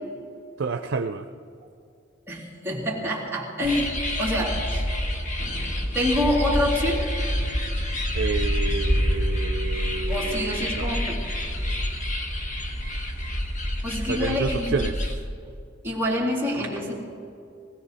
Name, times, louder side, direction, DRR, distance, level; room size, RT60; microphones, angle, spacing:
voice 1, 0.6-1.3 8.1-11.0 14.1-15.0, right 4 dB, 90° right, 8 dB, 0.5 m, -29 dB
voice 2, 2.3-4.8 5.9-7.0 10.1-11.2 13.8-14.8 15.8-16.9, left 1 dB, 10° right, -5 dB, 3.1 m, -26 dB
sound 1, 3.6-15.1, equal, 40° left, 1.5 m, -27 dB
sound 2, 5.4-8.1, equal, 75° left, 2.4 m, -40 dB
20.0 x 16.5 x 4.2 m, 2.5 s
head